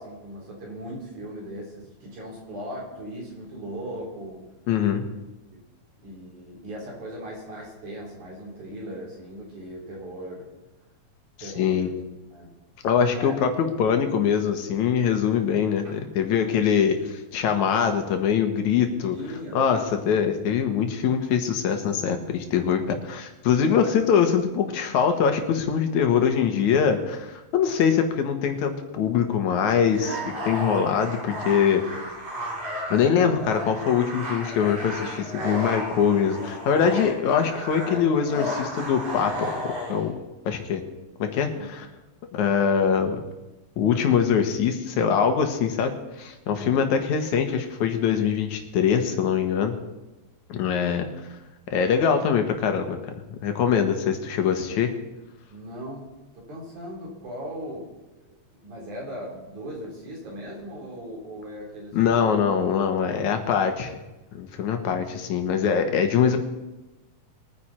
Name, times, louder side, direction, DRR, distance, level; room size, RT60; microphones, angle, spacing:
voice 1, 0.0-4.4 5.5-5.6 6.0-10.5 11.4-12.0 12.3-12.5 13.1-13.4 13.6-14.0 19.1-19.9 23.6-23.9 41.6-41.7 46.6-46.9 55.5-57.9 58.2-58.3 58.6-62.4, equal, 90° right, -3 dB, 5.4 m, -38 dB
voice 2, 4.7-5.0 11.4-11.9 12.8-19.2 19.5-32.1 32.9-40.1 40.5-40.8 41.2-41.9 42.3-43.2 43.8-45.9 46.2-49.8 50.5-51.1 51.7-53.0 53.4-55.0 61.9-64.0 64.3-66.4, left 7 dB, 80° left, 6 dB, 2.7 m, -23 dB
sound 1, 29.9-40.0, equal, 70° right, 7.6 m, -33 dB
22.0 x 9.8 x 4.4 m, 1.0 s
omnidirectional pair, 3.3 m